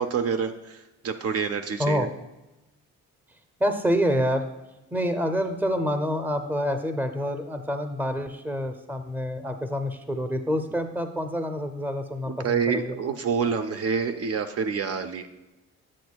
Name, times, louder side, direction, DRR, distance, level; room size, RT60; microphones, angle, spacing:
voice 1, 0.0-2.1 12.3-15.3, right 6 dB, 50° right, 7 dB, 0.6 m, -27 dB
voice 2, 1.8-2.1 3.6-4.4 4.9-13.0, equal, 5° right, 7 dB, 0.6 m, -27 dB
8.3 x 7.8 x 2.3 m, 1.0 s
cardioid pair, 90°, 30 cm